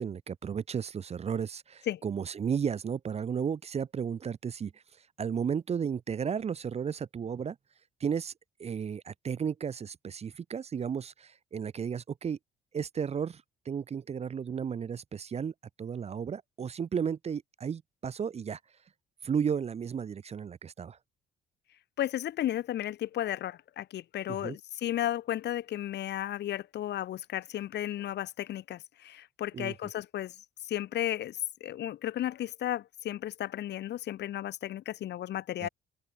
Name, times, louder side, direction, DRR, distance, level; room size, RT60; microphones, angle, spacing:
voice 1, 0.0-4.8 5.2-7.6 8.0-8.3 8.6-12.4 12.7-18.6 19.2-21.0 24.3-24.6 29.5-29.7 35.6-35.7, right 7 dB, 30° right, 0.4 m, -34 dB
voice 2, 22.0-30.3 30.6-35.7, left 12 dB, 60° left, 0.5 m, -34 dB
open air
cardioid pair, 90°, 20 cm